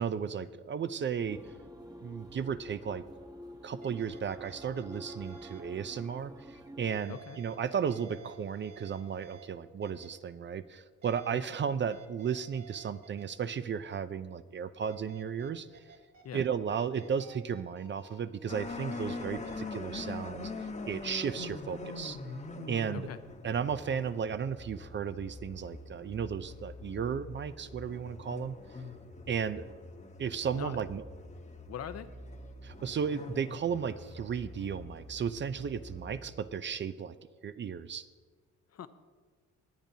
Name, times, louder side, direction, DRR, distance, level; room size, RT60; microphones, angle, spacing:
voice 1, 0.0-1.4 2.0-3.0 3.6-15.7 16.3-22.2 22.7-23.1 23.4-28.6 29.3-29.6 30.2-31.0 32.6-37.1 37.4-38.1, right 7 dB, 40° right, 13 dB, 0.5 m, -34 dB
sound 1, 1.3-7.0, equal, 10° right, 1.1 m, -48 dB
sound 2, 3.2-3.3 3.8-5.6 6.9-9.5 9.8-10.1 11.0-11.5 11.9-13.2 14.8-16.4 16.7-18.1 18.9-19.6, right 8 dB, 60° right, 2.8 m, -54 dB
voice 2, 7.1-7.4 11.3-11.5 16.2-16.4 22.9-23.2 30.5-30.8 31.7-32.1 38.7-38.9, left 8 dB, 55° left, 11 dB, 0.8 m, -42 dB
sound 3, 18.5-36.3, left 3 dB, 25° left, 1.1 m, -44 dB
20.5 x 8.9 x 2.8 m, 1.5 s
cardioid pair, 90°, 30 cm